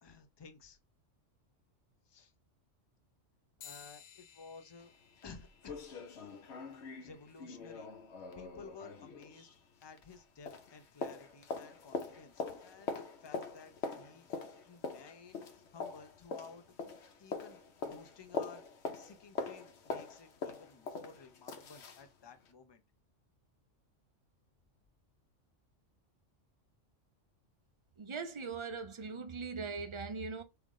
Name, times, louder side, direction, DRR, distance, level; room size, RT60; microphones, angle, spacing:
voice 1, 0.0-0.8 2.1-2.3 3.6-4.9 5.2-5.8 6.9-7.9 8.4-16.6 17.2-22.8, left 5 dB, 35° left, 0.4 m, -55 dB
sound 1, 3.6-13.4, left 8 dB, 85° left, 1.2 m, -62 dB
sound 2, 4.8-4.9 5.2-5.3 5.6-10.2 10.5-22.1 22.4-22.5, left 4 dB, 65° left, 1.0 m, -43 dB
voice 2, 28.0-30.4, right 4 dB, 55° right, 0.3 m, -40 dB
3.8 x 3.5 x 3.6 m
omnidirectional pair, 1.3 m